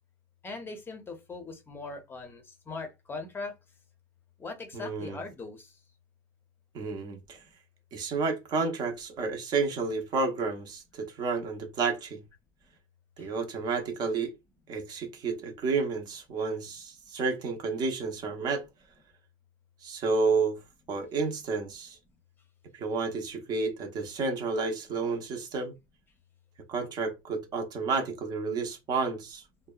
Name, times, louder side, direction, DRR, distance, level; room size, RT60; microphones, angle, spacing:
voice 1, 0.4-3.6 4.4-5.7 13.2-13.3, left 3 dB, 20° left, 0.6 m, -40 dB
voice 2, 4.7-5.2 6.7-7.4 7.9-12.2 13.2-14.3 14.7-18.6 19.8-20.6 20.9-22.0 22.7-25.7 26.7-29.4, right 4 dB, 40° right, 0.7 m, -31 dB
2.6 x 2.1 x 2.3 m
supercardioid pair, 125°, 11 cm